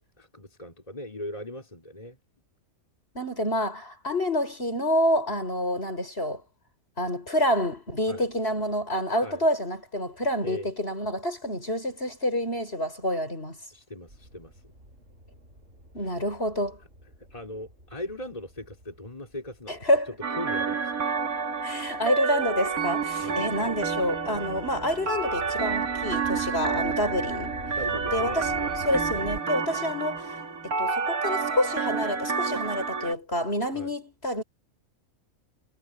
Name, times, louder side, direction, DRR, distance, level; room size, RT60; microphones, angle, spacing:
voice 1, 0.0-2.2 8.1-8.3 9.2-9.4 10.4-10.7 13.7-14.6 16.0-16.2 17.2-19.8 20.4-20.9 23.2-23.4 27.7-28.8 33.7-33.9, left 1 dB, 25° left, 4.3 m, -39 dB
voice 2, 3.1-6.4 7.0-13.6 15.9-16.8 19.7-20.1 21.6-27.6 28.1-28.4 28.8-30.3 30.6-34.4, left 1 dB, 45° left, 6.5 m, -28 dB
sound 1, 14.1-20.8 21.4-29.4, right 1 dB, 50° right, 5.2 m, -46 dB
sound 2, 20.2-33.1, right 5 dB, 90° right, 2.8 m, -29 dB
omnidirectional pair, 1.5 m